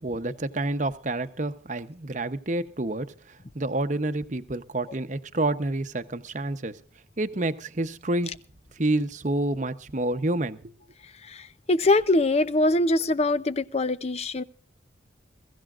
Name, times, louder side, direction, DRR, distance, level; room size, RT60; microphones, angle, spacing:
voice 1, 0.0-6.8 7.2-8.3 8.8-10.7, right 2 dB, 40° right, 10 dB, 0.9 m, -28 dB
voice 2, 11.3-14.4, left 2 dB, 35° left, 15 dB, 0.6 m, -23 dB
22.0 x 15.0 x 2.5 m, 0.41 s
head